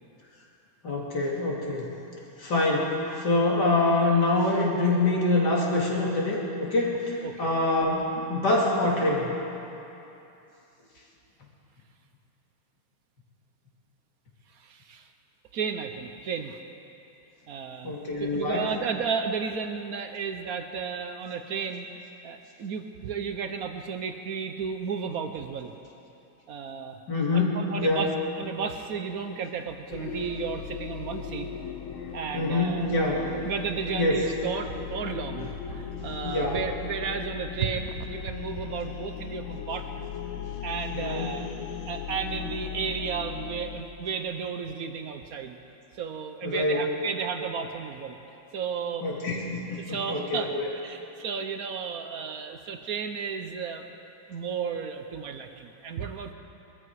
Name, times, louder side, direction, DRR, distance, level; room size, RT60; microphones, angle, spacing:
voice 1, 0.8-1.9 2.4-9.3 17.8-18.7 27.1-28.1 32.3-33.2 33.9-34.2 36.2-36.6 40.9-41.3 46.4-46.8 49.0-50.7, left 2 dB, 50° left, -3 dB, 3.1 m, -25 dB
voice 2, 14.5-15.1 15.5-16.6 17.5-17.9 18.2-21.9 22.2-25.7 26.5-27.0 27.3-31.5 32.1-32.9 33.4-40.1 40.6-41.5 41.9-45.6 45.9-48.2 48.5-49.1 49.7-53.9 54.3-56.3, right 6 dB, 65° right, 6 dB, 0.9 m, -33 dB
sound 1, 29.9-43.8, left 8 dB, 70° left, 1.7 m, -37 dB
22.5 x 13.5 x 4.8 m, 2.8 s
omnidirectional pair, 2.4 m